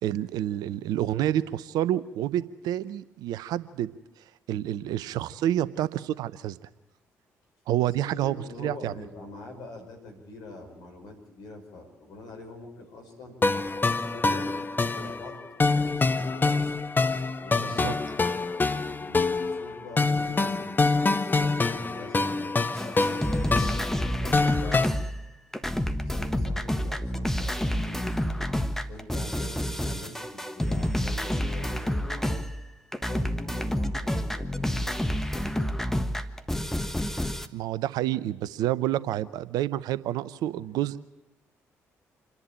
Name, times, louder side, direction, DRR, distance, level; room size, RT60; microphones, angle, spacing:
voice 1, 0.0-3.9 4.5-6.6 7.7-8.9 17.8-17.9 37.5-41.0, right 12 dB, 65° right, 16 dB, 0.8 m, -28 dB
voice 2, 8.0-13.3 14.1-16.9 17.4-18.3 18.9-21.0 21.2-24.8 25.9-28.4 28.9-32.4 33.0-35.7, left 2 dB, 65° left, 2 dB, 5.6 m, -44 dB
sound 1, 13.4-24.9, left 3 dB, 30° left, 1.1 m, -26 dB
sound 2, 22.8-25.3 25.5-32.7 32.9-37.5, equal, 5° left, 1.4 m, -29 dB
27.5 x 11.0 x 8.8 m, 0.99 s
hypercardioid pair, 45°, 7 cm